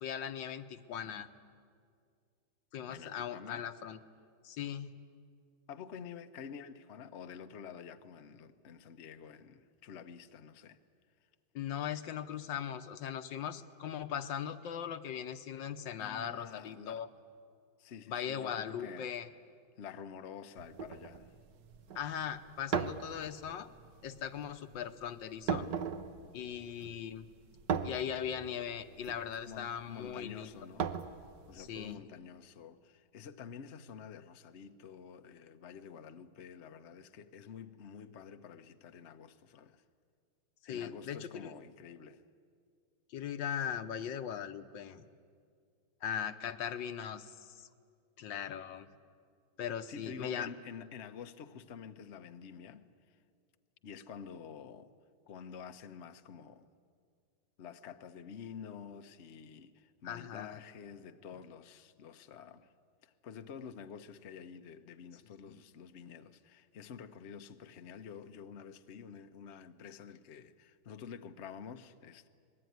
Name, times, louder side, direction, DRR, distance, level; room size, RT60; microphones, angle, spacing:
voice 1, 0.0-1.3 2.7-4.0 4.4-4.9 11.5-17.1 18.1-19.3 21.9-23.7 24.0-25.7 26.3-27.3 27.8-30.5 31.5-32.0 40.6-41.5 43.1-45.0 46.0-47.7 48.2-48.9 49.6-50.5 60.0-60.6 65.5-65.6, left 8 dB, 70° left, 1.5 m, -39 dB
voice 2, 2.9-3.6 5.7-10.8 16.0-17.0 17.8-19.1 19.8-21.3 29.5-31.0 31.5-39.8 40.7-42.2 49.9-52.9 53.8-54.9 55.3-56.7 57.6-62.7 63.0-72.3, left 7 dB, 50° left, 0.8 m, -49 dB
sound 1, 20.6-31.9, right 7 dB, 65° right, 1.5 m, -40 dB
25.5 x 20.5 x 9.4 m
omnidirectional pair, 2.2 m